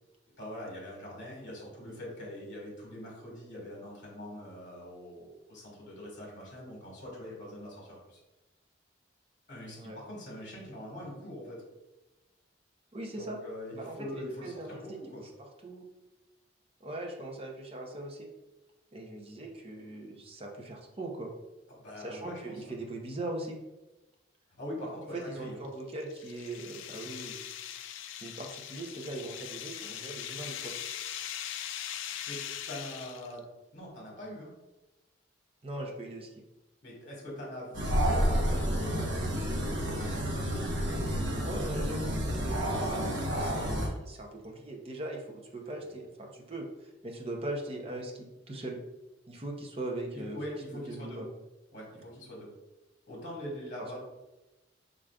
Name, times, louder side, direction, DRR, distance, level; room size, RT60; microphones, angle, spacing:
voice 1, 0.4-8.2 9.5-11.6 13.2-15.2 21.7-22.7 24.6-25.6 32.3-32.4 32.7-33.4 33.7-34.5 36.8-40.2 42.6-42.8 45.7-45.8 50.1-51.2 51.7-52.5 53.1-54.0, left 1 dB, 45° left, -4 dB, 1.4 m, -43 dB
voice 2, 12.9-13.4 13.7-14.8 15.1-15.8 16.8-18.3 18.9-21.3 22.0-23.6 25.1-27.4 28.1-30.8 35.6-36.3 41.4-42.1 42.4-43.1 43.3-48.8 49.3-50.4 50.9-51.3, right 2 dB, 30° right, 1 dB, 0.6 m, -40 dB
sound 1, 25.6-33.4, left 10 dB, 80° left, 0.3 m, -41 dB
sound 2, 37.7-43.9, equal, 65° right, 0.9 m, -30 dB
4.8 x 3.8 x 2.3 m, 1.0 s
head